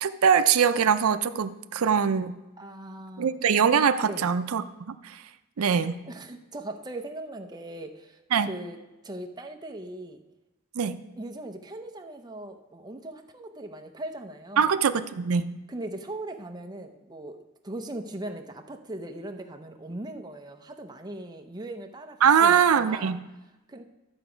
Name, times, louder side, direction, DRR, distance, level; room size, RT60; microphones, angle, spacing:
voice 1, 0.0-2.4 3.2-5.2 5.6-6.0 8.3-8.5 10.8-11.0 14.6-15.5 22.2-23.2, right 7 dB, 85° right, 11 dB, 0.5 m, -23 dB
voice 2, 2.6-3.3 4.1-4.3 6.1-8.8 9.0-10.2 11.2-14.7 15.7-23.2 23.7-23.8, right 1 dB, 20° right, 4 dB, 0.7 m, -39 dB
12.5 x 6.9 x 5.0 m, 1.1 s
head